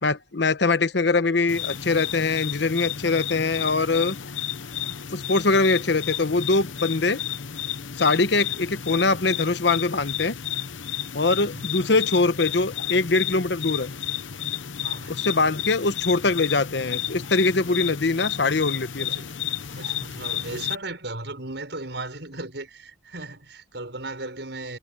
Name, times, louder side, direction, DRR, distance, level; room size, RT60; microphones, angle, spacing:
voice 1, 0.0-4.2 5.1-7.2 8.0-10.4 11.1-13.9 15.1-19.1, left 3 dB, 65° left, 1.0 m, -23 dB
sound 1, 1.5-20.8, left 10 dB, 85° left, 0.9 m, -32 dB
voice 2, 11.4-11.7 14.8-15.2 19.0-19.4 19.7-24.8, right 2 dB, 65° right, 6.6 m, -36 dB
head